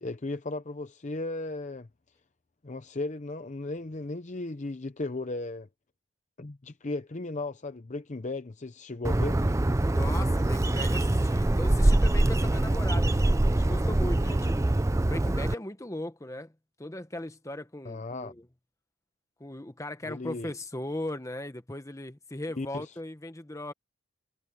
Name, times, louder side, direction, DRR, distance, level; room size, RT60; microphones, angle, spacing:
voice 1, 0.0-1.9 2.6-5.7 6.4-9.4 17.8-18.3 20.0-20.5 22.6-22.9, left 2 dB, 35° left, 0.6 m, -36 dB
Bird, 9.0-15.5, right 1 dB, 15° right, 0.4 m, -24 dB
voice 2, 9.9-14.6 15.1-16.5 16.8-18.5 19.4-23.7, left 1 dB, 15° left, 1.1 m, -38 dB
head